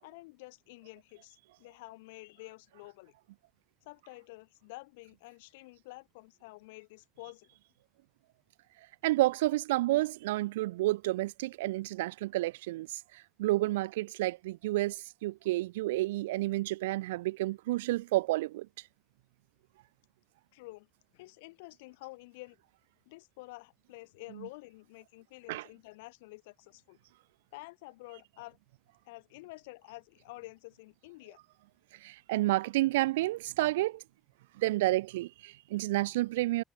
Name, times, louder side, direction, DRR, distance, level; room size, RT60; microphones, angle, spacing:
voice 1, 0.0-3.1 3.8-7.5 20.5-20.9 21.1-22.6 23.1-27.0 27.5-28.6 29.0-31.4, left 23 dB, 85° left, 7.5 m, -49 dB
voice 2, 9.0-18.7 25.5-25.6 32.0-34.0 34.6-36.6, right 18 dB, 90° right, 0.6 m, -30 dB
hypercardioid pair, 50°, 0 cm